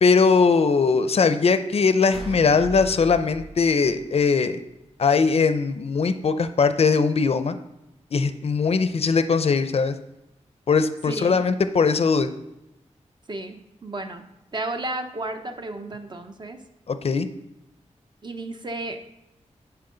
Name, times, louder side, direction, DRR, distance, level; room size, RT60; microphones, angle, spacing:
voice 1, 0.0-4.6 5.0-7.6 8.1-9.9 10.7-12.3 16.9-17.3, left 5 dB, 55° left, 10 dB, 0.6 m, -20 dB
sound 1, 2.1-4.7, right 2 dB, 55° right, 2.5 m, -39 dB
voice 2, 11.1-11.4 13.3-14.2 14.5-16.6 18.2-19.0, right 2 dB, 40° right, 6 dB, 0.8 m, -33 dB
11.5 x 4.7 x 3.9 m, 0.90 s
wide cardioid pair, 90°, 12 cm